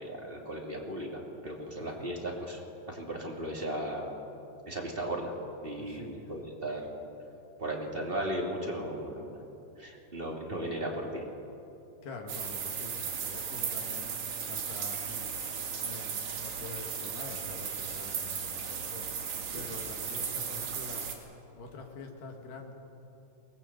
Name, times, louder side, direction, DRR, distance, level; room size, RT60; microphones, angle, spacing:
voice 1, 0.0-2.6 2.9-4.1 4.7-5.3 5.6-6.8 7.6-9.2 9.8-11.2 19.5-19.7, right 1 dB, 15° right, -1 dB, 2.7 m, -36 dB
voice 2, 1.8-2.1 5.8-6.3 12.0-14.1 14.5-15.3 15.8-19.1 19.5-21.1 21.5-22.7, left 3 dB, 80° left, 2 dB, 3.8 m, -45 dB
sound 1, 12.3-21.1, right 6 dB, 75° right, 4.0 m, -36 dB
22.5 x 20.0 x 8.1 m, 2.9 s
omnidirectional pair, 3.8 m